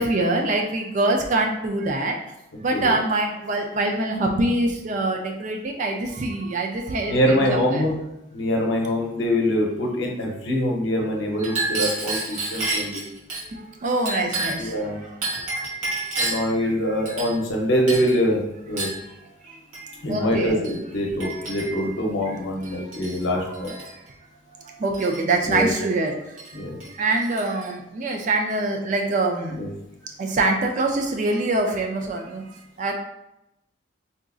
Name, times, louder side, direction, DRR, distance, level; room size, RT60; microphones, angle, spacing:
voice 1, 0.0-2.2 2.6-7.8 13.8-14.7 20.1-20.6 21.2-21.3 23.3-23.5 24.8-26.1 27.0-29.6 30.2-32.4 32.8-32.9, right 2 dB, 40° right, 2 dB, 0.3 m, -24 dB
voice 2, 7.1-7.9 8.3-13.0 14.6-15.0 16.2-18.9 20.0-23.8 25.4-25.7 26.5-26.8 29.5-29.7, equal, 65° left, 0 dB, 0.7 m, -24 dB
Chink clink, 11.4-13.4 14.1-14.7 15.2-16.5 17.1-17.6 17.9-18.2 18.8-19.0 19.7-19.9 20.6-20.8 21.2-21.9 22.6-23.2 23.5-23.9 24.9-25.6 26.4-26.5 26.8-27.7, right 2 dB, 90° right, 1.2 m, -30 dB
3.8 x 2.5 x 2.3 m, 0.87 s
head